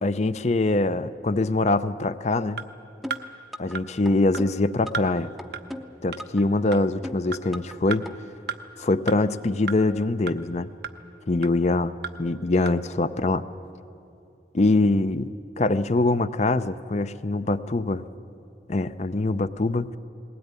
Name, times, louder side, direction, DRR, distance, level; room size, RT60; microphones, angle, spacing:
voice 1, 0.0-2.6 3.6-5.3 6.0-8.1 8.8-10.7 11.3-11.9 12.2-13.5 14.5-15.3 15.6-18.0 18.7-20.0, left 2 dB, 40° left, 13 dB, 0.6 m, -23 dB
sound 1, 2.6-2.7 3.1-3.2 3.7-3.8 4.3-4.4 4.9-5.1 5.5-5.6 6.1-6.2 6.7-6.8 7.3-7.4 7.9-8.0 8.5-8.6 9.1-9.2 9.7-9.8 10.3-10.4 10.8-10.9 11.4-11.5 12.0-12.1 12.7-12.8, right 6 dB, 65° right, 0.8 m, -32 dB
sound 2, 3.0-3.8 4.1-5.1 5.4-6.4 6.7-7.8 8.1-8.2, equal, ahead, 0.7 m, -37 dB
20.0 x 17.0 x 9.6 m, 2.7 s
head